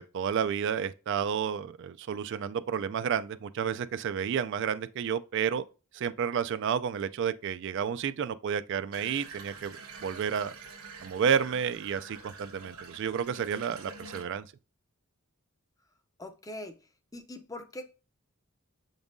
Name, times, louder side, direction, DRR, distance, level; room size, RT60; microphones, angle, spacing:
voice 1, 0.0-5.6 5.9-10.5 11.0-14.4, right 7 dB, 55° right, 0.3 m, -31 dB
Water tap faucet / Bathtub (filling or washing), 8.9-14.2, right 4 dB, 85° right, 1.0 m, -46 dB
voice 2, 16.2-16.8 17.1-17.9, left 1 dB, 15° left, 0.5 m, -41 dB
7.0 x 5.3 x 2.6 m
head